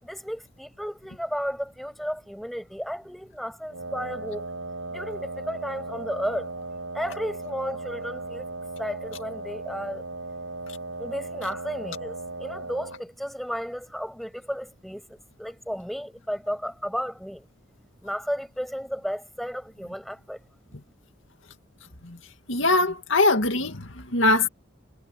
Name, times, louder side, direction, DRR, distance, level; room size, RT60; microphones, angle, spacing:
voice 1, 0.0-4.5 4.9-6.7 6.9-8.5 8.8-10.0 11.0-17.5 18.0-20.4, equal, ahead, 7.9 m, -33 dB
Wind instrument woodwind instrument, 3.7-13.0, right 3 dB, 70° right, 7.0 m, -37 dB
voice 2, 22.5-24.5, left 2 dB, 60° left, 2.4 m, -22 dB
head